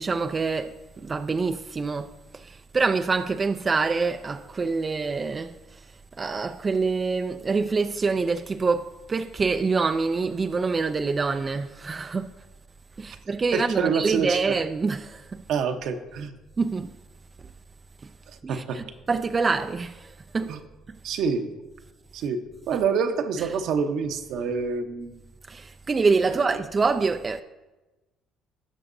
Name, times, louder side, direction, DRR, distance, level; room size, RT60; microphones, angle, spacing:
voice 1, 0.0-12.5 13.0-15.4 16.6-16.9 17.4-17.5 18.0-18.1 18.4-20.6 20.9-21.0 22.7-22.8 23.4-23.5 25.4-27.4, right 4 dB, 30° right, 0.4 m, -26 dB
voice 2, 13.5-14.4 15.5-16.3 18.5-18.8 20.5-20.6 21.0-21.5 22.1-22.4 22.7-25.2 26.3-26.6, right 6 dB, 70° right, 0.9 m, -27 dB
18.0 x 6.4 x 2.7 m
supercardioid pair, 75°, 0 cm